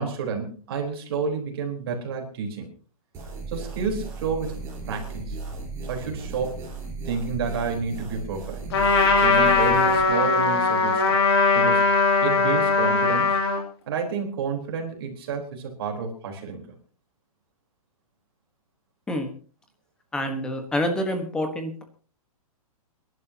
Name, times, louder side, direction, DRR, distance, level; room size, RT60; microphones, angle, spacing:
voice 1, 0.0-2.7 3.5-4.6 4.9-5.4 5.9-6.6 7.1-8.6 9.1-11.2 11.5-11.8 12.2-13.4 13.9-16.7, right 5 dB, 40° right, 2 dB, 4.0 m, -30 dB
sound 1, 3.1-10.0, right 3 dB, 15° right, 4.2 m, -36 dB
Trumpet, 8.7-13.6, left 4 dB, 45° left, 3.0 m, -20 dB
voice 2, 20.1-21.8, left 1 dB, 5° left, 6 dB, 1.2 m, -27 dB
28.5 x 11.5 x 2.8 m, 0.38 s
hypercardioid pair, 180°, 19 cm